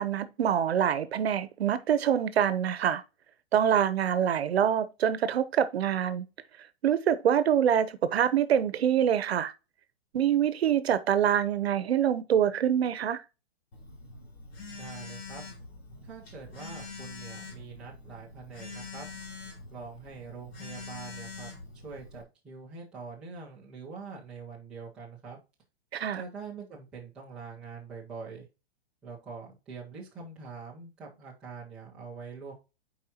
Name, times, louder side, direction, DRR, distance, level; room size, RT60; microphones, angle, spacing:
voice 1, 0.0-3.0 3.5-6.3 6.8-9.5 10.1-13.2 25.9-26.2, right 9 dB, 75° right, 0.9 m, -25 dB
Telephone, 13.7-22.2, left 4 dB, 65° left, 3.3 m, -44 dB
voice 2, 14.7-15.4 16.0-19.1 19.7-21.5 21.8-25.4 26.1-28.4 29.0-32.5, right 5 dB, 5° right, 0.6 m, -44 dB
8.0 x 4.7 x 2.8 m
hypercardioid pair, 180°, 31 cm